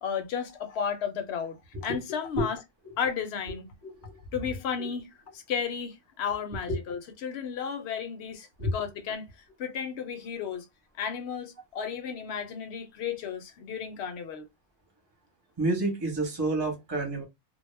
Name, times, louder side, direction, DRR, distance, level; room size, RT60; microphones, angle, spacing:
voice 1, 0.0-2.6 3.0-3.6 4.3-5.1 5.3-9.3 9.6-10.6 11.0-14.4, left 7 dB, 65° left, 0.8 m, -33 dB
voice 2, 3.8-4.2 4.8-4.9 6.7-6.8 8.6-8.7 15.6-17.2, right 1 dB, 20° right, 0.8 m, -29 dB
2.2 x 2.0 x 3.1 m
omnidirectional pair, 1.3 m